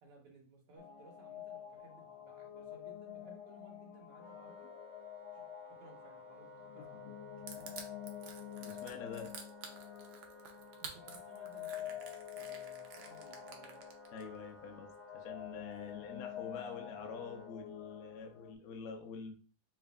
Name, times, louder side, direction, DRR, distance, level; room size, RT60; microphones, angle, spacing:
voice 1, 0.0-4.7 5.3-7.1 10.8-13.8, right 2 dB, 60° right, 0 dB, 1.7 m, -60 dB
sound 1, 0.8-18.5, left 11 dB, 90° left, 1.8 m, -48 dB
Wind instrument woodwind instrument, 4.2-17.6, left 1 dB, 10° right, 1.1 m, -56 dB
Crushing, 7.5-14.2, right 6 dB, 80° right, 1.5 m, -50 dB
voice 2, 7.6-7.9 8.6-9.3 14.1-19.3, left 5 dB, 65° left, 3 dB, 0.9 m, -47 dB
3.4 x 3.3 x 3.5 m, 0.36 s
omnidirectional pair, 2.2 m